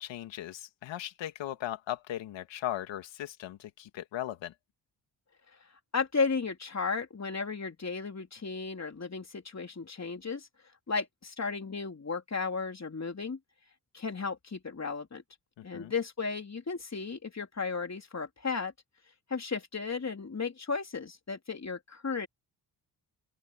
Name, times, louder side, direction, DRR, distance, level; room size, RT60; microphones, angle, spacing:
voice 1, 0.0-4.5 15.6-15.9, left 12 dB, 85° left, 2.1 m, -38 dB
voice 2, 5.9-10.5 10.9-13.4 13.9-15.2 15.6-18.7 19.3-22.3, left 4 dB, 35° left, 3.8 m, -34 dB
open air
cardioid pair, 60°, 44 cm